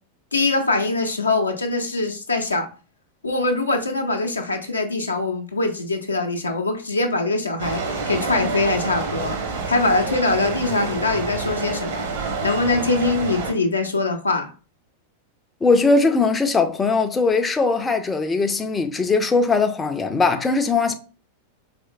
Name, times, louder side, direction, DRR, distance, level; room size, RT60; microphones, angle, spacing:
voice 1, 0.3-2.7 3.2-12.1 12.4-14.5, left 3 dB, 80° left, 0.6 m, -23 dB
sound 1, 7.6-13.5, right 4 dB, 65° right, 0.9 m, -28 dB
voice 2, 15.6-20.9, left 3 dB, 15° left, 0.4 m, -20 dB
4.2 x 3.1 x 2.3 m
figure-of-eight pair, 90°, 0 cm